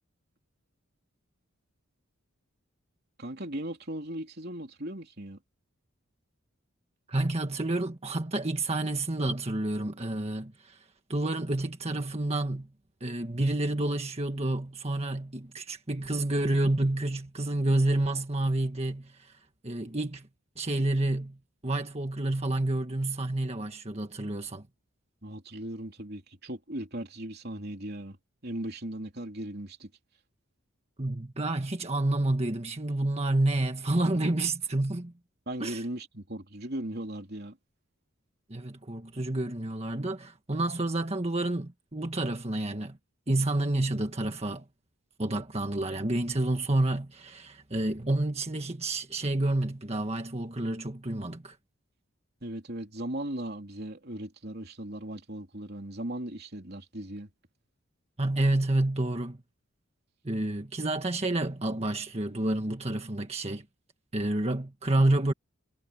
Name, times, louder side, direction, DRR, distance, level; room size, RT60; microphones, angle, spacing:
voice 1, 3.2-5.4 25.2-28.2 28.4-29.9 35.5-37.6 52.4-57.3, right 1 dB, 45° right, 3.4 m, -38 dB
voice 2, 7.1-12.7 13.0-20.3 20.6-21.4 21.6-24.7 31.0-35.1 35.6-35.8 38.5-43.0 43.3-44.7 45.2-51.6 58.2-59.4 60.2-63.6 64.1-65.3, right 2 dB, 30° right, 1.6 m, -29 dB
head